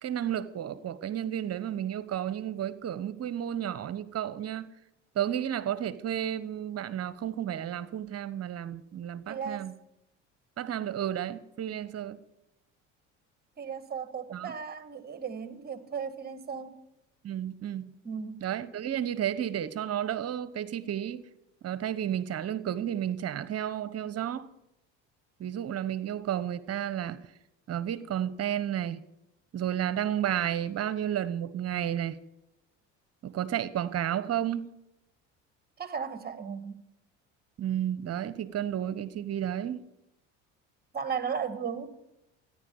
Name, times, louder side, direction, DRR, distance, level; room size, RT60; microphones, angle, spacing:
voice 1, 0.0-4.7 5.1-9.7 10.6-12.2 14.3-14.5 17.2-17.9 18.4-21.3 21.6-24.5 25.4-27.2 27.7-29.0 29.5-32.2 33.2-34.7 37.6-39.8, right 10 dB, 45° right, 1.1 m, -32 dB
voice 2, 9.3-9.7 13.6-16.8 18.0-18.5 35.8-36.8 40.9-41.9, right 6 dB, 30° right, 1.8 m, -35 dB
14.0 x 10.0 x 7.3 m
supercardioid pair, 80°, 34 cm